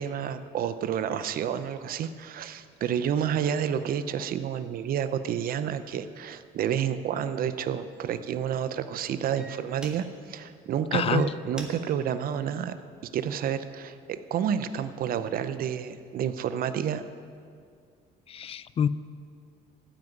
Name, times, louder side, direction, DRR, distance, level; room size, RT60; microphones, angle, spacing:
voice 1, 0.0-12.7 13.1-17.0, right 8 dB, 60° right, 12 dB, 0.7 m, -30 dB
sound 1, 8.0-8.2 8.9-9.0 9.3-10.4 11.0-13.3 13.9-14.2, right 1 dB, 5° right, 1.6 m, -48 dB
voice 2, 10.9-11.3 18.3-18.9, left 8 dB, 35° left, 17 dB, 0.4 m, -27 dB
14.5 x 6.0 x 9.1 m, 2.2 s
cardioid pair, 110°, 17 cm